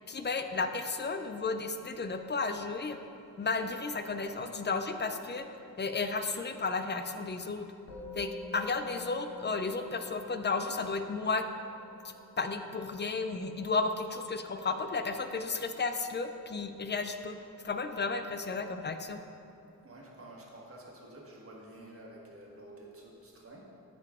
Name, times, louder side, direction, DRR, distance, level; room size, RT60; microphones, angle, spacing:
voice 1, 0.1-3.0 3.4-5.5 5.8-7.7 8.1-11.4 12.4-17.4 17.6-19.2, left 4 dB, 30° left, 7 dB, 0.5 m, -33 dB
Musical instrument, 7.9-17.4, left 2 dB, 50° left, 1.6 m, -50 dB
voice 2, 19.8-23.7, right 1 dB, 40° right, -3 dB, 1.5 m, -50 dB
13.5 x 4.7 x 3.6 m, 2.7 s
wide cardioid pair, 130°, 35 cm